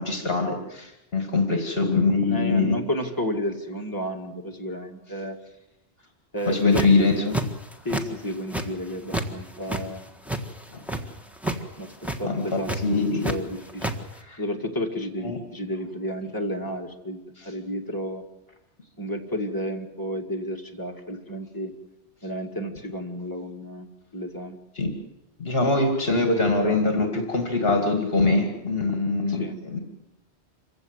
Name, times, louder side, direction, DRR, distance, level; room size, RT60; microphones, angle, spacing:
voice 1, 0.0-2.8 6.5-7.4 10.7-10.8 12.2-13.3 14.3-14.4 15.2-15.4 24.8-25.0 25.4-29.8, left 3 dB, 60° left, 4 dB, 2.4 m, -23 dB
voice 2, 2.3-5.4 6.3-6.9 7.8-10.0 11.8-13.9 14.4-17.2 17.4-18.2 19.0-21.7 22.2-24.6 29.3-29.6, equal, 20° left, 2 dB, 2.1 m, -32 dB
sound 1, 6.5-7.0 7.3-8.0 8.3-9.3 9.6-11.0 11.4-11.6 11.9-12.2 12.6-13.4 13.6-13.9, right 1 dB, ahead, 1.5 m, -28 dB
26.5 x 16.0 x 8.1 m, 0.92 s
omnidirectional pair, 1.2 m